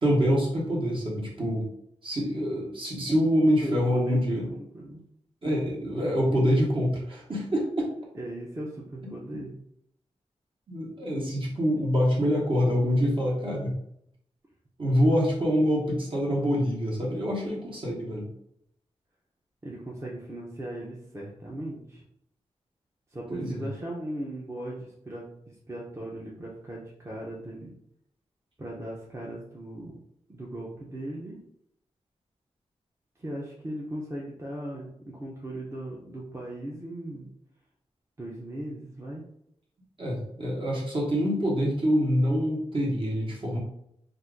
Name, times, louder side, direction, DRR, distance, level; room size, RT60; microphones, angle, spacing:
voice 1, 0.0-1.6 2.0-4.5 5.4-7.9 9.0-9.4 10.7-13.7 14.8-18.3 23.3-23.7 40.0-43.6, equal, 45° right, -3 dB, 1.2 m, -25 dB
voice 2, 3.6-5.0 8.1-9.5 19.6-22.0 23.1-27.7 28.6-30.0 30.3-31.4 33.2-37.3 38.2-39.2, right 1 dB, 20° right, -3 dB, 0.7 m, -38 dB
2.7 x 2.5 x 3.6 m, 0.73 s
wide cardioid pair, 100°, 12 cm